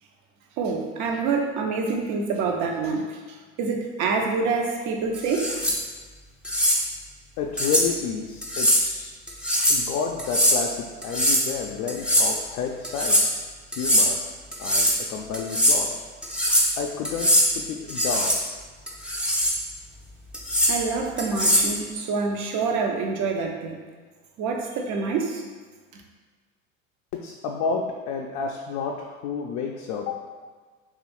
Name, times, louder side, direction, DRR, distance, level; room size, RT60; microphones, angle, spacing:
voice 1, 0.6-5.5 20.7-23.8 24.4-25.4 25.9-26.0, right 4 dB, 45° right, 2 dB, 0.7 m, -26 dB
sound 1, 5.3-5.8 6.4-6.8 7.6-7.9 8.4-8.8 9.3-9.8 10.2-10.6 11.0-11.5 11.9-12.4 12.8-13.3 13.7-14.1 14.5-15.0 15.3-15.8 16.2-16.7 17.0-17.5 17.9-18.4 18.9-19.6 20.3-20.7 21.2-21.7, equal, ahead, 0.6 m, -21 dB
voice 2, 7.4-9.1 9.7-13.4 13.8-14.2 14.6-15.9 16.8-18.4 27.1-30.3, left 6 dB, 45° left, 0 dB, 0.5 m, -30 dB
3.0 x 2.4 x 4.3 m, 1.5 s
hypercardioid pair, 80°, 40 cm